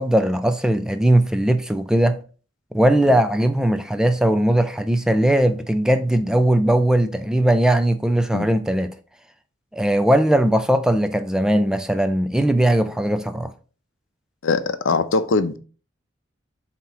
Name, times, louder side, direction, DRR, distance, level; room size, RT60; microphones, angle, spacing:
voice 1, 0.0-2.2 2.7-8.9 9.7-13.5, right 1 dB, 5° right, 0.4 m, -19 dB
voice 2, 14.4-15.6, left 4 dB, 80° left, 0.6 m, -21 dB
7.4 x 3.0 x 4.9 m
head